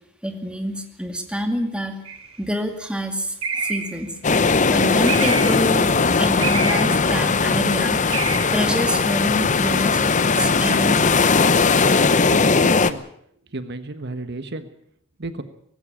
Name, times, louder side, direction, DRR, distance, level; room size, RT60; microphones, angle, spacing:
voice 1, 0.2-2.0 2.4-4.1 4.7-8.0 8.5-11.3, equal, 5° right, 5 dB, 2.2 m, -26 dB
sound 1, 2.1-2.4 3.4-4.1 5.1-5.7 6.4-7.0 8.1-8.6 9.7-9.8, right 4 dB, 90° right, 2.9 m, -27 dB
sound 2, 4.2-12.9, left 4 dB, 35° left, 0.9 m, -18 dB
voice 2, 12.3-13.0 13.5-14.7 15.2-15.4, right 2 dB, 55° right, 10 dB, 1.2 m, -32 dB
18.5 x 16.0 x 8.8 m, 0.69 s
head